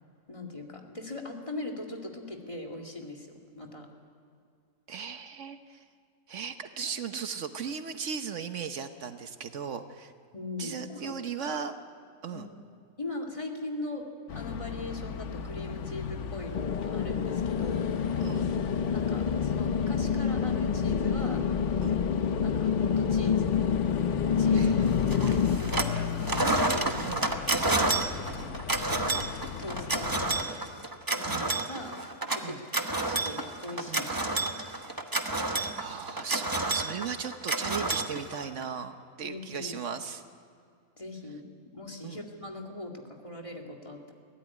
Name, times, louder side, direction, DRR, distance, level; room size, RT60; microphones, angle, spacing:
voice 1, 0.3-3.3 3.5-3.9 10.3-11.2 11.4-11.6 12.3-12.4 13.0-18.2 18.9-21.4 22.3-23.9 24.4-25.1 25.6-27.2 27.7-27.9 28.9-29.3 29.6-30.6 31.1-32.0 32.3-32.6 33.0-34.1 39.2-39.7 41.0-41.5 41.7-44.1, left 2 dB, 25° left, 3 dB, 2.3 m, -40 dB
voice 2, 4.9-5.8 6.3-10.1 10.6-11.7 12.2-12.5 18.2-18.5 21.8-22.0 24.5-25.0 27.0-27.3 28.2-28.6 31.2-31.5 32.4-32.6 33.9-34.1 34.6-34.9 35.8-40.2 42.0-42.2, right 6 dB, 70° right, 9 dB, 1.2 m, -37 dB
sound 1, 14.3-30.4, left 7 dB, 70° left, 1.1 m, -37 dB
sound 2, 16.5-25.6, left 6 dB, 45° left, 0.7 m, -27 dB
sound 3, 25.1-26.0 26.2-38.6, right 2 dB, 20° right, 1.0 m, -30 dB
22.5 x 16.0 x 9.7 m, 2.3 s
omnidirectional pair, 1.3 m